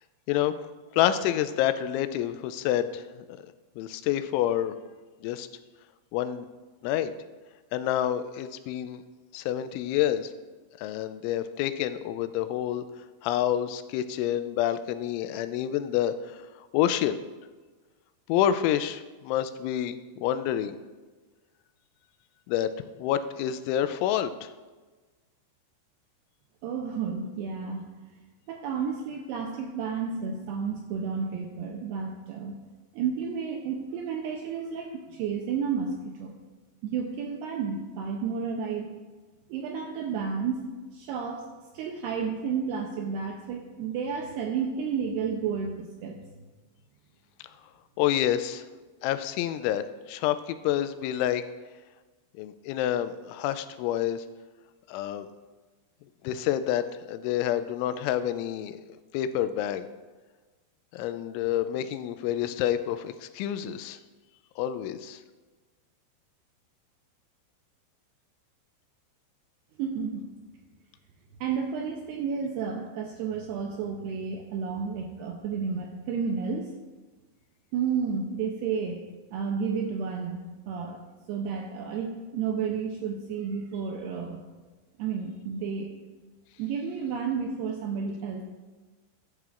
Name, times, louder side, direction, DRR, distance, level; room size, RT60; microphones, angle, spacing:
voice 1, 0.9-3.0 3.3-3.4 3.8-4.8 5.2-5.5 6.1-6.5 6.8-7.1 7.7-9.0 9.3-10.3 10.8-12.9 13.2-17.2 18.3-20.8 22.5-22.7 23.0-24.5 47.4-47.5 48.0-48.7 49.0-51.4 52.3-54.3 54.9-55.3 56.2-58.8 59.1-59.9 60.9-64.0 64.6-65.2, left 11 dB, 85° left, 11 dB, 3.0 m, -28 dB
voice 2, 26.6-27.9 28.5-32.6 32.9-36.3 36.8-39.0 39.5-40.7 40.9-41.4 41.7-46.2 69.8-70.3 71.4-76.7 77.7-79.0 79.3-81.0 81.3-84.4 85.0-86.0 86.6-88.4, right 6 dB, 85° right, 2 dB, 2.3 m, -31 dB
13.5 x 9.3 x 2.5 m, 1.3 s
omnidirectional pair, 5.4 m